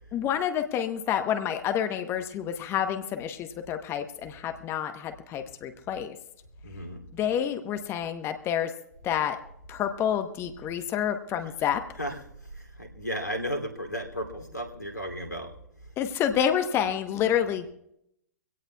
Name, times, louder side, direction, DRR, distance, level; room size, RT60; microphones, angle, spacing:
voice 1, 0.1-6.2 7.1-8.7 9.0-9.4 9.7-11.8 16.0-17.7, left 9 dB, 25° left, 8 dB, 1.1 m, -28 dB
voice 2, 6.6-7.0 11.4-11.7 12.0-12.3 12.5-15.5, equal, 90° left, 4 dB, 2.9 m, -34 dB
24.5 x 17.0 x 2.4 m, 0.75 s
figure-of-eight pair, 110°, 9 cm